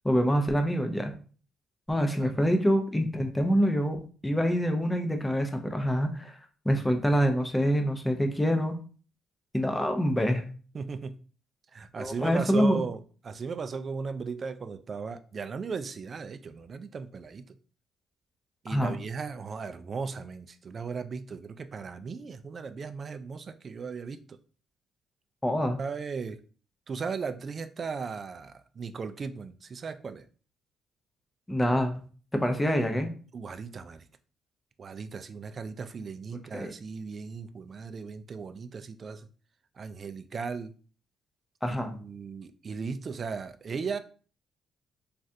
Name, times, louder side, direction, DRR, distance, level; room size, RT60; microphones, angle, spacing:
voice 1, 0.0-1.1 1.9-6.4 6.7-8.8 9.5-10.5 12.0-12.8 18.7-18.9 25.4-25.8 31.5-31.9 32.3-33.1 36.5-36.7 41.6-41.9, equal, 10° left, 0.5 m, -26 dB
voice 2, 10.7-11.2 11.7-17.4 18.6-24.4 25.8-26.4 26.9-30.3 33.3-34.0 34.8-39.3 39.8-40.8 41.7-44.0, right 5 dB, 45° right, 0.3 m, -37 dB
3.2 x 2.4 x 2.6 m
cardioid pair, 90°, 0 cm